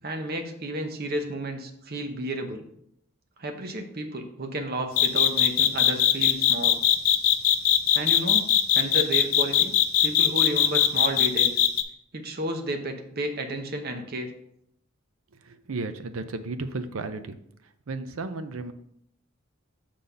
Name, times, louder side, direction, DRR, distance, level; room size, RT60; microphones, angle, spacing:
voice 1, 0.0-2.7 3.4-6.8 7.9-8.5 8.7-9.7 10.0-11.5 12.1-14.3, right 1 dB, 45° right, 5 dB, 0.8 m, -32 dB
sound 1, 5.0-11.8, left 11 dB, 75° left, 0.6 m, -20 dB
voice 2, 15.5-17.4 17.9-18.7, right 3 dB, 75° right, 10 dB, 0.6 m, -33 dB
6.6 x 3.9 x 5.5 m, 0.73 s
head